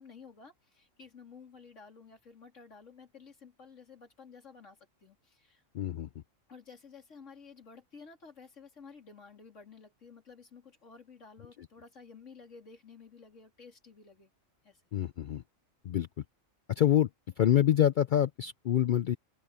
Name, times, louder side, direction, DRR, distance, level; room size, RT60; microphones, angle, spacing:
voice 1, 0.0-5.6 6.5-14.3 14.6-14.8, left 5 dB, 65° left, 3.6 m, -53 dB
voice 2, 5.7-6.1 14.9-15.4 15.8-16.1 16.7-17.1 17.4-19.2, left 10 dB, 80° left, 0.4 m, -26 dB
open air
omnidirectional pair, 1.4 m